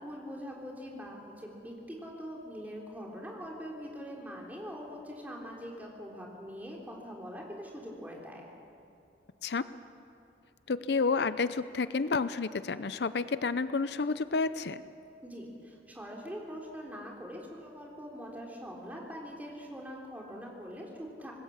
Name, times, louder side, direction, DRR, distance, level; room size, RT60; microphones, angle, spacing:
voice 1, 0.0-8.5 15.2-21.3, equal, 10° right, -2 dB, 3.7 m, -43 dB
voice 2, 10.7-14.8, left 4 dB, 75° left, 14 dB, 0.6 m, -30 dB
25.5 x 20.0 x 7.3 m, 2.8 s
head